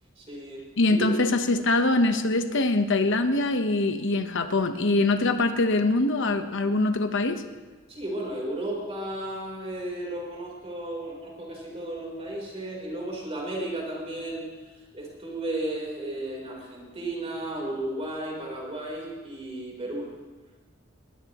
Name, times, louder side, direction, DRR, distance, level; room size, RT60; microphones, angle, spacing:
voice 1, 0.2-1.2 7.9-14.4 14.9-20.1, right 1 dB, 30° right, -2 dB, 4.0 m, -34 dB
voice 2, 0.8-7.4, left 2 dB, 65° left, 7 dB, 1.2 m, -23 dB
20.5 x 20.0 x 3.1 m, 1.3 s
head